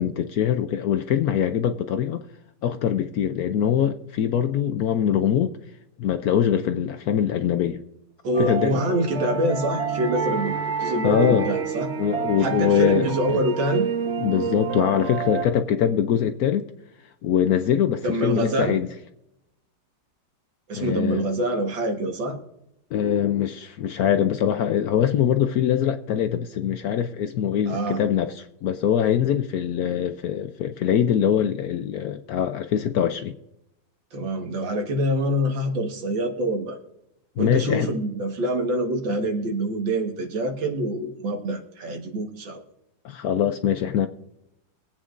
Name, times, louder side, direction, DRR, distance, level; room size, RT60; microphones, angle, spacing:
voice 1, 0.0-2.2 2.6-5.6 6.0-7.8 8.4-8.8 11.0-11.5 12.0-13.4 14.2-16.7 17.2-18.9 20.7-21.3 22.9-33.4 37.4-37.9 43.0-44.1, left 9 dB, 70° left, 0.9 m, -23 dB
voice 2, 8.2-11.9 12.4-13.9 18.0-18.8 20.7-22.4 27.7-28.0 34.1-36.8 37.4-42.6, right 1 dB, 80° right, 2.2 m, -25 dB
sound 1, 8.3-15.4, right 6 dB, 40° right, 1.1 m, -28 dB
22.5 x 8.6 x 2.5 m
omnidirectional pair, 2.0 m